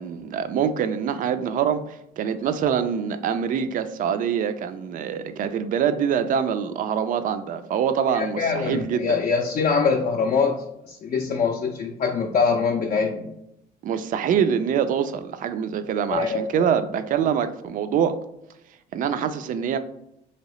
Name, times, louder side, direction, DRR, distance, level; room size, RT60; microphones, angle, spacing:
voice 1, 0.0-9.2 13.8-18.2 18.9-19.8, right 8 dB, 55° right, 11 dB, 0.4 m, -25 dB
voice 2, 8.1-13.3 16.1-16.5, left 5 dB, 45° left, 1 dB, 0.4 m, -23 dB
3.0 x 2.8 x 3.0 m, 0.81 s
cardioid pair, 110°, 17 cm